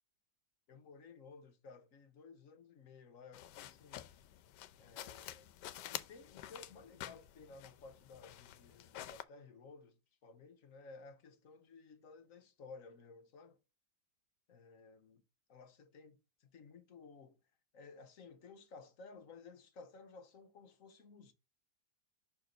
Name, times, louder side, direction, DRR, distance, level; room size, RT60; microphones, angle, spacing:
voice 1, 0.7-4.1 4.8-5.5 5.9-13.6 14.5-15.2 15.5-17.4 17.7-21.3, left 4 dB, 60° left, 1.1 m, -56 dB
sound 1, 3.3-9.2, left 12 dB, 85° left, 1.2 m, -49 dB
5.9 x 4.7 x 3.9 m
omnidirectional pair, 1.8 m